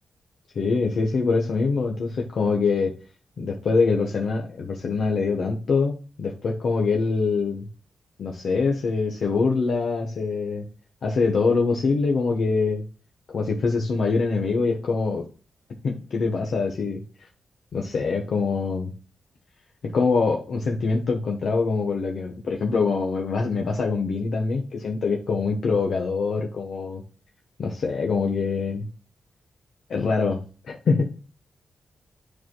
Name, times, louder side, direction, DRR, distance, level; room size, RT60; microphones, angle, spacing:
voice 1, 0.5-2.9 3.4-7.7 8.2-10.6 11.0-12.8 13.3-15.3 15.8-17.3 17.7-18.9 19.8-27.0 27.6-28.8 29.9-30.4 30.7-31.1, left 4 dB, 60° left, 1 dB, 1.1 m, -24 dB
10.0 x 4.8 x 2.2 m, 0.36 s
wide cardioid pair, 140°, 0 cm